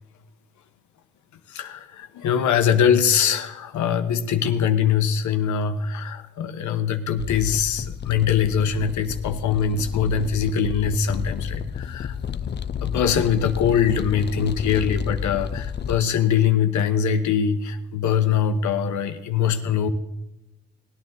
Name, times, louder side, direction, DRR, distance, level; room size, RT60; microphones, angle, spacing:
voice 1, 1.5-12.1 12.8-19.9, left 7 dB, 75° left, 8 dB, 1.1 m, -22 dB
sound 1, 7.2-16.0, left 8 dB, 35° left, 0.6 m, -31 dB
18.5 x 9.6 x 3.9 m, 0.93 s
cardioid pair, 90°, 30 cm